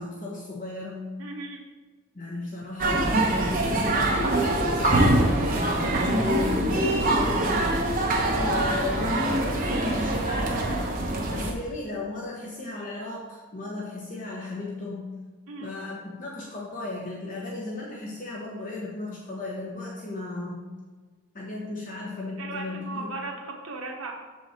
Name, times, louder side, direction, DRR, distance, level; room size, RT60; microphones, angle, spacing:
voice 1, 0.0-1.2 2.1-7.9 8.4-11.0 11.3-15.2 15.6-20.7 21.3-23.1, left 2 dB, 40° left, -2 dB, 0.9 m, -35 dB
voice 2, 1.2-1.6 15.5-15.7 22.4-24.1, right 3 dB, 75° right, 1 dB, 1.3 m, -36 dB
sound 1, 2.8-11.5, right 1 dB, 40° right, 1.1 m, -24 dB
7.0 x 5.6 x 4.4 m, 1.4 s
head